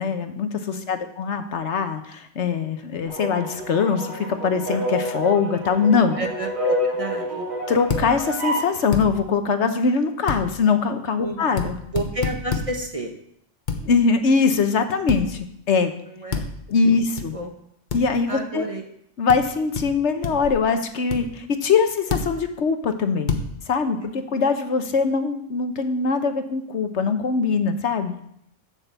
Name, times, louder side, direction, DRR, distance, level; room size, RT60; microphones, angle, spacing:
voice 1, 0.0-6.2 7.7-11.8 13.8-15.9 16.7-17.4 17.9-18.7 19.2-23.4 23.7-28.1, left 5 dB, 70° left, 8 dB, 1.2 m, -22 dB
voice 2, 0.7-1.1 6.2-7.5 11.2-11.5 11.9-13.1 16.1-16.5 16.9-17.0 17.3-17.5 18.3-18.9, right 1 dB, 30° right, 3 dB, 1.1 m, -31 dB
sound 1, 3.0-8.7, equal, 55° right, 4.0 m, -28 dB
sound 2, 7.9-8.1 8.9-9.1 10.3-10.4 11.6-11.7 12.0-12.7 13.7-13.8 15.1-15.2 16.3-16.5 17.2-17.3 17.9-18.0 19.3-19.4 19.7-19.9 20.2-20.5 21.1-21.2 22.1-22.3 23.3-23.5, left 5 dB, 40° left, 1.1 m, -26 dB
7.6 x 7.5 x 6.9 m, 0.73 s
omnidirectional pair, 1.3 m